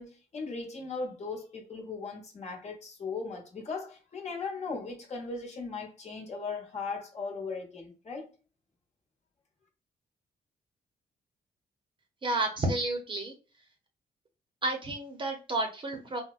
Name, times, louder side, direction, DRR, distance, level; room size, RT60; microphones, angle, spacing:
voice 1, 0.0-8.3, left 4 dB, 45° left, 1.1 m, -38 dB
voice 2, 12.2-13.3 14.6-16.2, right 2 dB, 30° right, 0.7 m, -31 dB
3.9 x 2.1 x 2.4 m
wide cardioid pair, 160°, 17 cm